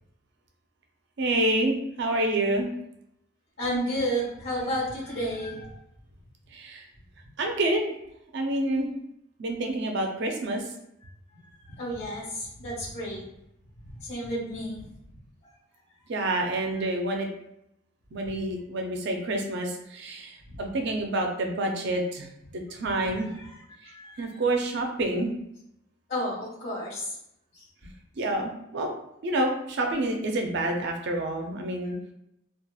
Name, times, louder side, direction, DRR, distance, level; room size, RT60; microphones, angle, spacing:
voice 1, 1.2-2.7 6.5-6.8 7.4-7.8 8.3-8.9 9.4-10.7 16.1-17.3 18.1-23.3 23.8-25.4 28.2-28.9 29.2-32.0, right 1 dB, 55° right, 3 dB, 0.4 m, -28 dB
voice 2, 3.6-5.7 11.7-13.2 14.0-14.9 20.5-20.6 22.8-23.5 23.8-24.4 26.1-27.2 27.5-27.6, equal, 50° left, -9 dB, 1.5 m, -32 dB
2.7 x 2.3 x 2.3 m, 0.80 s
head